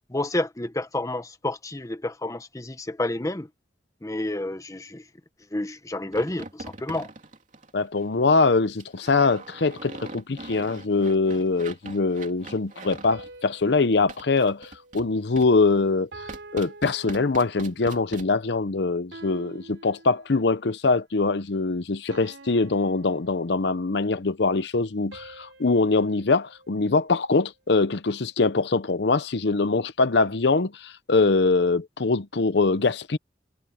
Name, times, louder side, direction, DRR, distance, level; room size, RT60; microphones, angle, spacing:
voice 1, 0.1-3.5 4.0-5.0 5.5-7.1, left 1 dB, 20° left, 0.9 m, -29 dB
sound 1, 6.1-8.1 8.8-13.3 14.1-15.1 15.4-15.5 16.3-18.3, right 2 dB, 45° right, 3.1 m, -42 dB
voice 2, 7.7-16.1 16.5-33.2, left 3 dB, 65° left, 0.7 m, -23 dB
sound 2, 13.1-15.6 16.1-17.9 19.1-20.6 22.1-24.0 25.1-27.5, right 2 dB, 80° right, 3.7 m, -48 dB
head